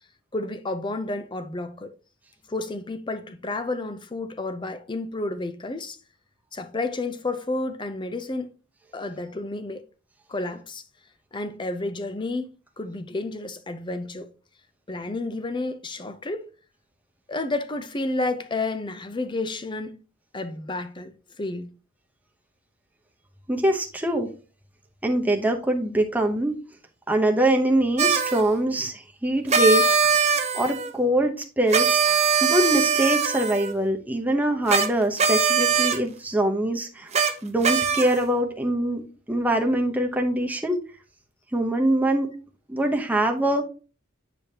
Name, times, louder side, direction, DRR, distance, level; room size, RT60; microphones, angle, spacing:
voice 1, 0.3-1.9 2.5-6.0 6.5-8.5 8.9-9.8 10.3-10.8 11.3-14.3 14.9-16.5 17.3-20.0 20.3-21.7, left 2 dB, 25° left, 0.6 m, -31 dB
voice 2, 23.5-24.3 25.0-26.5 27.1-30.2 30.5-37.1 37.4-39.0 39.3-40.8 41.5-42.3 42.7-43.6, right 1 dB, 10° right, 0.9 m, -23 dB
sound 1, 28.0-28.4 29.5-30.9 31.7-33.7 34.7-34.9 35.2-36.0 37.1-37.3 37.6-38.3, right 5 dB, 35° right, 0.7 m, -21 dB
8.7 x 5.1 x 2.9 m
head